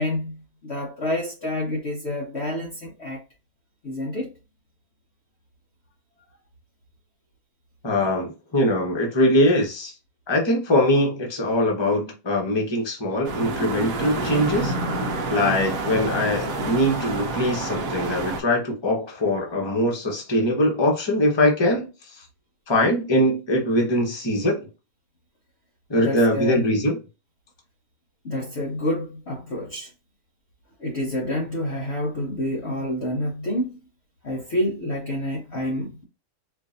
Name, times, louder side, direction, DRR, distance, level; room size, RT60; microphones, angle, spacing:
voice 1, 0.0-3.2 3.8-4.3 26.0-26.7 28.2-29.9 30.8-33.8 34.2-36.0, left 1 dB, 50° left, 0.9 m, -28 dB
voice 2, 7.8-9.9 10.3-14.7 15.3-21.9 22.7-24.7 25.9-27.0, left 1 dB, 20° left, 0.9 m, -22 dB
sound 1, 13.2-18.4, right 2 dB, 65° right, 1.0 m, -28 dB
4.5 x 2.5 x 2.6 m
omnidirectional pair, 1.8 m